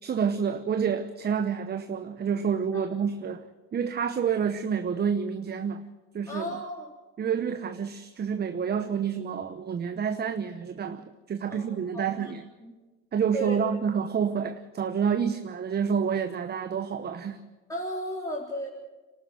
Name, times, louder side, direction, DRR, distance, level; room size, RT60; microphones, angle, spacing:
voice 1, 0.0-5.9 6.1-6.5 7.2-12.4 13.1-17.4, right 7 dB, 25° right, 9 dB, 0.9 m, -28 dB
voice 2, 6.3-6.9 11.5-12.3 12.6-12.7 13.3-13.6 17.7-18.7, right 1 dB, 10° left, -3 dB, 3.9 m, -34 dB
26.5 x 12.5 x 7.9 m, 1.2 s
supercardioid pair, 100°, 37 cm